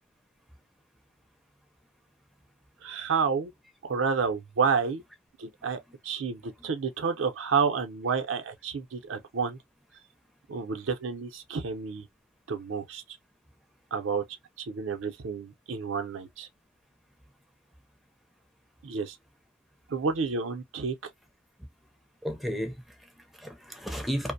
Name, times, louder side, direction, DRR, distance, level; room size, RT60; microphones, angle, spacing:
voice 1, 2.8-3.5 3.8-5.0 5.4-9.6 10.5-12.1 12.5-13.0 13.9-14.2 14.6-16.5 18.8-19.2 19.9-21.0, right 5 dB, 80° right, 0.5 m, -30 dB
voice 2, 22.2-24.3, equal, ahead, 0.4 m, -34 dB
2.5 x 2.0 x 2.6 m
head